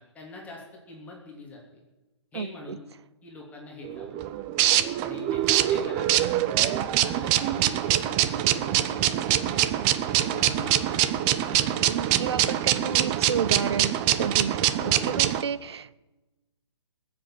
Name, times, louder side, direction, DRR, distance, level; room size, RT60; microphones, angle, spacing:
voice 1, 0.0-1.8 2.3-2.8 3.2-4.2 5.0-9.7 10.2-11.0 11.4-11.8 14.8-15.3, left 3 dB, 10° left, 3.0 m, -44 dB
voice 2, 2.3-2.8 11.9-16.0, right 7 dB, 65° right, 0.8 m, -31 dB
sound 1, 3.8-15.4, right 12 dB, 20° right, 0.7 m, -24 dB
20.0 x 7.7 x 8.9 m
hypercardioid pair, 145°, 15 cm